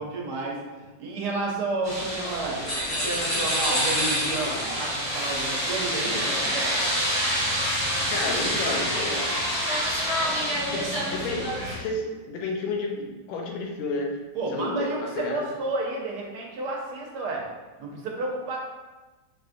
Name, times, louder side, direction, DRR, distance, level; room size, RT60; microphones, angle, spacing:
voice 1, 0.0-2.6 2.9-6.9 14.3-17.5 17.8-18.6, right 2 dB, 70° right, -2 dB, 1.1 m, -31 dB
sound 1, 1.8-11.8, equal, ahead, 0.9 m, -27 dB
sound 2, 2.6-4.8, equal, 45° left, 0.8 m, -28 dB
voice 2, 8.1-9.4 10.7-10.8 11.1-14.1 14.5-15.5, left 2 dB, 80° left, 0 dB, 1.4 m, -31 dB
4.3 x 2.3 x 2.5 m, 1.2 s
omnidirectional pair, 2.1 m